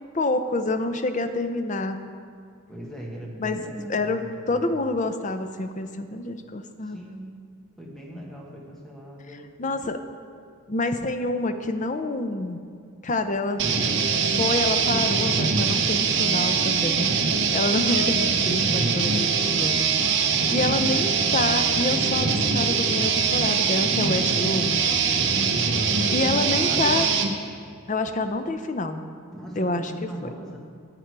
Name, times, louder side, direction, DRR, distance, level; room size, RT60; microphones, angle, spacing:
voice 1, 0.1-2.1 3.4-3.6 3.9-7.0 9.6-10.0 10.7-12.6 13.0-13.7 14.2-19.8 20.5-24.9 26.1-27.1 27.9-29.0 29.6-30.3, left 2 dB, 35° left, 8 dB, 0.5 m, -27 dB
voice 2, 2.7-4.8 6.8-7.4 7.8-9.4 25.9-27.1 29.3-30.6, equal, ahead, -3 dB, 1.3 m, -39 dB
sound 1, 13.6-27.3, right 5 dB, 55° right, 0.8 m, -23 dB
10.5 x 9.0 x 4.6 m, 2.3 s
head